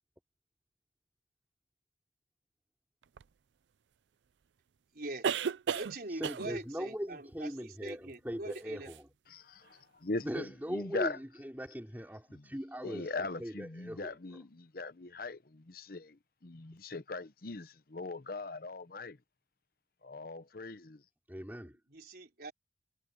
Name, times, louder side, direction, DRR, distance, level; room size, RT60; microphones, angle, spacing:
sound 1, 3.2-3.3 5.2-6.0 6.2-6.6 8.5-8.6 8.9-9.0, right 7 dB, 80° right, 0.4 m, -33 dB
voice 1, 4.9-5.3 5.7-8.9 21.9-22.5, right 2 dB, 55° right, 4.0 m, -43 dB
voice 2, 6.1-9.1 10.2-14.4 21.3-21.8, equal, 10° right, 5.0 m, -40 dB
voice 3, 9.3-11.2 12.8-16.2 16.4-19.2 20.0-21.0, left 3 dB, 55° left, 0.9 m, -40 dB
head